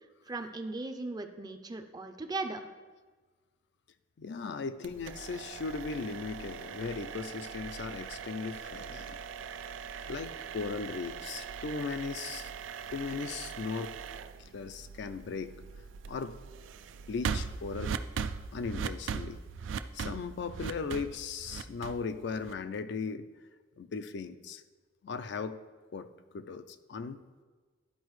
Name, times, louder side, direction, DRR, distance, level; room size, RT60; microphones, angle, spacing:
voice 1, 0.3-2.6, right 2 dB, 20° right, 7 dB, 0.4 m, -37 dB
voice 2, 4.2-9.2 10.1-12.5 12.9-14.0 14.5-15.5 16.1-16.4 17.1-18.0 18.5-19.4 19.9-23.3 23.8-24.6 25.0-25.6 25.9-26.1 26.3-27.2, left 5 dB, 65° left, 10 dB, 0.4 m, -37 dB
sound 1, 4.8-22.8, right 6 dB, 85° right, 0.3 m, -40 dB
12.0 x 4.7 x 3.1 m, 1.4 s
head